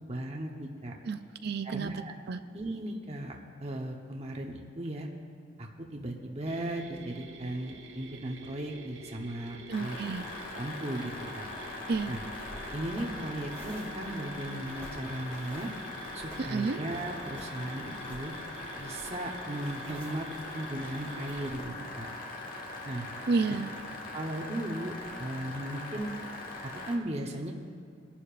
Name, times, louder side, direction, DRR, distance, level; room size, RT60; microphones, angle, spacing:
voice 1, 0.1-0.9 1.6-2.1 2.5-5.1 5.6-10.0 10.5-11.4 12.1-12.2 12.7-15.7 16.1-18.3 18.8-20.3 20.5-22.1 22.8-23.1 24.1-26.1 26.6-27.5, right 1 dB, 35° right, 0 dB, 0.9 m, -37 dB
voice 2, 1.1-2.4 9.7-10.2 11.9-12.1 16.4-16.8 23.3-23.7, right 4 dB, 55° right, 10 dB, 0.4 m, -31 dB
Mechanisms, 6.5-21.5, right 2 dB, 80° right, 1.1 m, -49 dB
Noisy PC, 9.7-27.0, left 2 dB, 45° left, 1.5 m, -41 dB
sound 1, 11.9-21.7, equal, 5° left, 2.1 m, -52 dB
24.0 x 11.5 x 2.5 m, 2.3 s
head